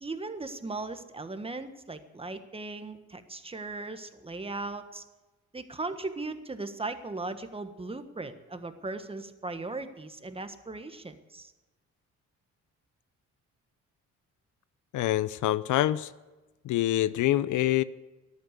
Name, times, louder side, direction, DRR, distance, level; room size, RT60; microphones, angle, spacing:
voice 1, 0.0-5.0 5.5-11.5, right 3 dB, 20° right, 9 dB, 1.4 m, -38 dB
voice 2, 14.9-16.1 16.6-17.8, left 14 dB, 80° left, 17 dB, 0.7 m, -25 dB
14.0 x 11.5 x 8.2 m, 1.1 s
cardioid pair, 90°, 30 cm